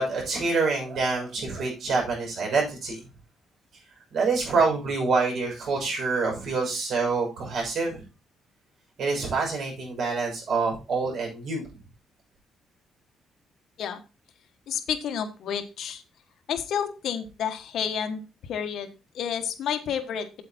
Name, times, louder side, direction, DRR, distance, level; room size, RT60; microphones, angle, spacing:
voice 1, 0.0-3.0 4.1-8.0 9.0-11.8, right 4 dB, 55° right, 0 dB, 6.3 m, -26 dB
voice 2, 14.7-16.0 16.5-18.2 18.5-20.3, left 8 dB, 60° left, 7 dB, 1.4 m, -30 dB
8.2 x 8.2 x 4.3 m, 0.29 s
cardioid pair, 165°, 0 cm